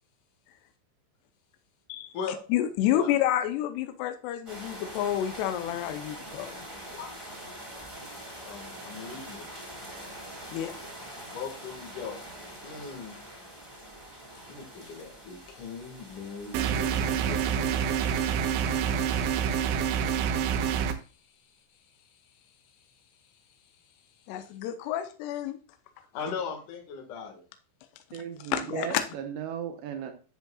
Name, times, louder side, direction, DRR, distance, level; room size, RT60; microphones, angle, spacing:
voice 1, 2.5-6.7 10.5-10.8 24.3-25.6 28.1-28.2 28.5-29.0, left 11 dB, 80° left, 8 dB, 2.4 m, -29 dB
sound 1, 4.5-19.7, equal, 10° right, 2.1 m, -44 dB
voice 2, 6.9-7.2 8.4-9.5 11.3-12.4 12.6-13.2 14.5-20.1 20.5-21.2 21.7-24.3 26.1-27.4, left 6 dB, 60° left, 0 dB, 2.3 m, -41 dB
sound 2, 16.5-20.9, right 8 dB, 90° right, 3.3 m, -27 dB
voice 3, 28.1-30.1, right 9 dB, 75° right, 6 dB, 2.9 m, -36 dB
10.5 x 7.5 x 2.3 m, 0.36 s
omnidirectional pair, 5.7 m